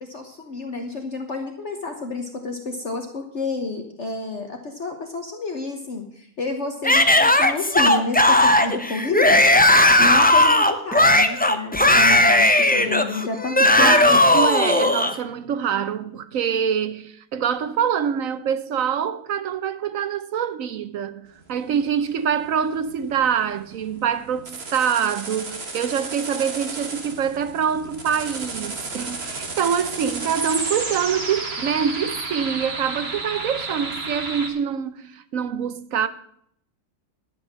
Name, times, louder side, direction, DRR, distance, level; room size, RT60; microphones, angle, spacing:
voice 1, 0.0-14.2, left 3 dB, 50° left, 1.4 m, -30 dB
Yell / Screaming, 6.8-15.1, left 1 dB, 10° left, 0.4 m, -16 dB
voice 2, 13.8-36.1, right 8 dB, 65° right, 1.0 m, -25 dB
sound 1, 21.5-34.5, right 3 dB, 40° right, 1.8 m, -32 dB
11.0 x 8.0 x 7.4 m
omnidirectional pair, 1.7 m